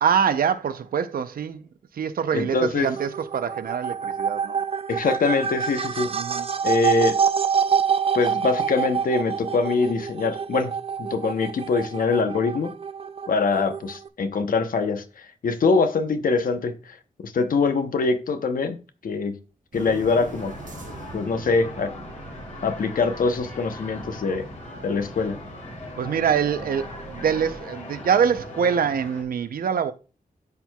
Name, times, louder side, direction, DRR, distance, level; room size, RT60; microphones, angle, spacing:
voice 1, 0.0-1.7 1.9-4.6 6.1-6.5 26.0-29.9, right 7 dB, 85° right, 0.6 m, -24 dB
voice 2, 2.3-2.9 4.9-6.1 6.6-7.2 8.1-10.7 11.0-12.7 13.3-18.8 19.0-19.4 19.7-20.6 21.1-21.9 22.6-24.5 24.8-25.4, left 4 dB, 75° left, 0.9 m, -23 dB
sound 1, 2.8-14.1, right 7 dB, 40° right, 0.4 m, -26 dB
sound 2, 19.7-29.2, left 2 dB, 55° left, 2.1 m, -40 dB
sound 3, 19.7-27.6, right 5 dB, 60° right, 0.9 m, -43 dB
13.0 x 4.5 x 2.3 m
wide cardioid pair, 145°, 15 cm